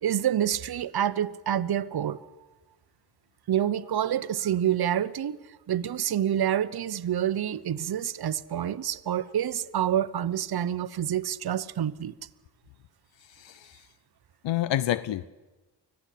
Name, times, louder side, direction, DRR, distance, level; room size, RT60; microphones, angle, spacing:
voice 1, 0.0-2.2 3.5-5.4 5.7-12.1, right 10 dB, 60° right, 0.9 m, -27 dB
voice 2, 13.4-13.7 14.4-15.2, left 13 dB, 80° left, 0.7 m, -28 dB
24.5 x 16.5 x 8.5 m
cardioid pair, 75°, 43 cm